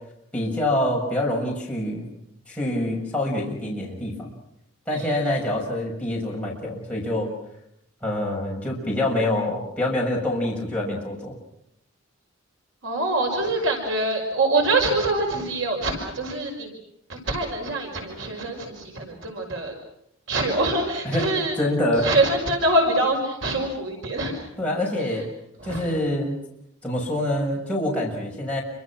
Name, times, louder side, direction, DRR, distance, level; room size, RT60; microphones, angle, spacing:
voice 1, 0.3-2.1 2.5-4.3 4.9-7.3 8.0-11.3 21.0-21.3 21.6-22.1 24.6-25.3 25.6-26.4 26.8-28.6, left 1 dB, 5° left, -4 dB, 6.8 m, -26 dB
voice 2, 4.9-5.2 12.8-16.7 17.1-19.7 20.3-21.6 22.0-24.4 25.6-25.9, right 2 dB, 65° right, 1 dB, 5.5 m, -24 dB
29.0 x 26.0 x 6.2 m, 0.77 s
head